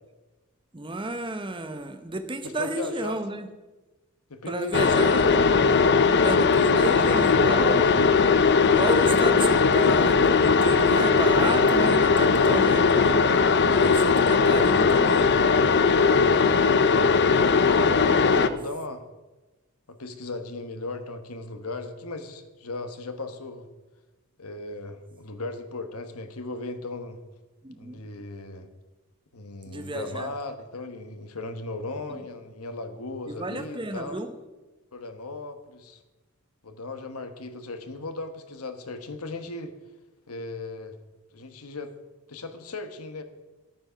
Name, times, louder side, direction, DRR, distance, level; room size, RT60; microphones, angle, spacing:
voice 1, 0.7-3.5 4.5-5.7 6.2-8.0 8.6-13.2 13.7-15.3 27.6-28.0 29.7-30.3 32.1-32.2 33.3-34.3, right 2 dB, 20° right, 8 dB, 0.8 m, -32 dB
voice 2, 2.4-3.6 4.3-5.1 14.2-14.6 16.6-17.2 18.1-19.0 19.9-23.7 24.4-27.2 27.7-28.7 29.3-34.1 34.9-36.0 36.6-39.7 40.3-40.9 41.3-41.9 42.3-43.2, left 2 dB, 85° left, 8 dB, 1.3 m, -37 dB
sound 1, 4.7-18.5, left 5 dB, 50° left, 0.6 m, -19 dB
12.0 x 9.1 x 5.7 m, 1.1 s
head